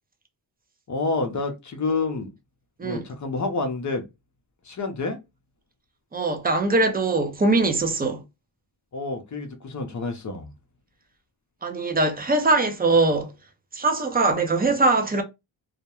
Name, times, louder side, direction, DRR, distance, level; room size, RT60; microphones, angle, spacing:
voice 1, 0.9-2.3 2.8-4.1 4.6-5.2 8.9-10.5, left 3 dB, 40° left, 0.6 m, -28 dB
voice 2, 6.1-8.2 11.6-13.3 13.7-15.2, right 3 dB, 20° right, 0.4 m, -22 dB
2.3 x 2.1 x 2.8 m
wide cardioid pair, 155°, 48 cm